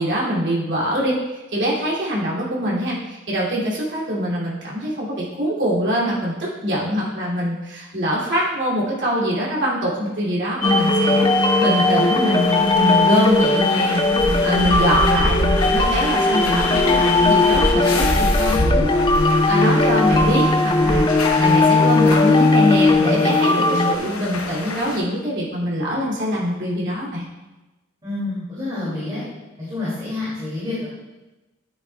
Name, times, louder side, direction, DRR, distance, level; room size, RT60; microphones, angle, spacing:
voice 1, 0.0-27.2, equal, 60° right, -5 dB, 2.6 m, -23 dB
sound 1, 10.6-25.0, left 1 dB, 80° left, 1.0 m, -25 dB
sound 2, 10.6-24.0, left 3 dB, 20° left, 0.4 m, -18 dB
voice 2, 28.0-29.2 29.7-30.9, left 2 dB, 20° right, -9 dB, 2.5 m, -28 dB
10.0 x 8.4 x 2.3 m, 1.1 s
head